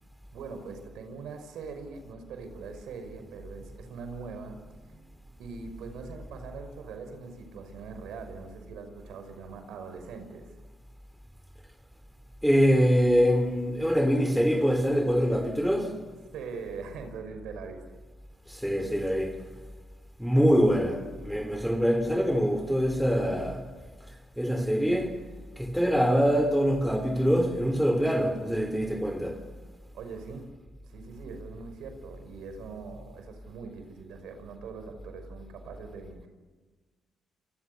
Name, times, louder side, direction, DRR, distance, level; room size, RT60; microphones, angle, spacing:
voice 1, 0.3-4.6 5.4-10.6 16.3-17.8 20.3-20.4 29.9-30.5 30.9-36.3, right 5 dB, 80° right, 5.8 m, -42 dB
voice 2, 12.4-16.1 18.5-19.5 20.2-23.7 24.4-25.2 25.6-29.5, equal, ahead, 3.4 m, -24 dB
28.0 x 28.0 x 7.0 m
cardioid pair, 90°, 0 cm